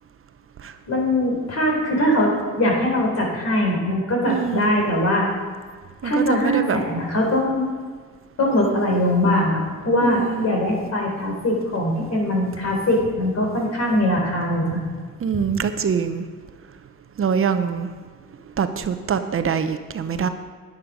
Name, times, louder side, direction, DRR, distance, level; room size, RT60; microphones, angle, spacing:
voice 1, 0.9-5.3 6.0-7.7 8.4-14.8 15.3-15.4, left 1 dB, 55° left, 0 dB, 4.0 m, -21 dB
voice 2, 4.3-4.7 6.0-6.8 10.0-10.6 15.2-16.3 17.2-17.9 18.6-20.3, right 7 dB, 45° right, 9 dB, 0.8 m, -24 dB
10.5 x 10.0 x 5.2 m, 1.5 s
cardioid pair, 90°, 30 cm